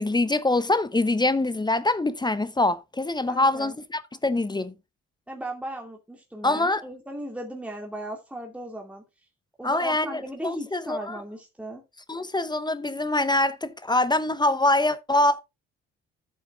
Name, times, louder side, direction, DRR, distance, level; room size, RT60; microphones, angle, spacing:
voice 1, 0.0-4.7 6.4-6.8 9.6-11.2 12.1-15.4, left 2 dB, 15° left, 0.8 m, -24 dB
voice 2, 3.3-3.8 5.3-9.0 9.6-11.8, right 1 dB, 5° right, 2.4 m, -37 dB
13.0 x 7.3 x 2.5 m
hypercardioid pair, 50°, 29 cm